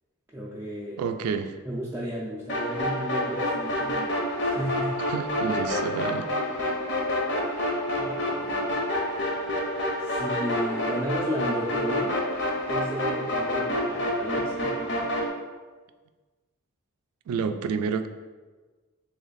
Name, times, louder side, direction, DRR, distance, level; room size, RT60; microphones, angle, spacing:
voice 1, 0.3-1.0 1.6-5.0 8.0-8.8 10.0-12.2 12.7-15.1, equal, 10° right, -6 dB, 0.4 m, -33 dB
voice 2, 1.0-1.6 5.1-6.3 17.3-18.1, right 6 dB, 85° right, 9 dB, 0.3 m, -29 dB
sound 1, 2.5-15.3, left 1 dB, 50° left, 0.7 m, -28 dB
3.2 x 3.1 x 4.0 m, 1.3 s
head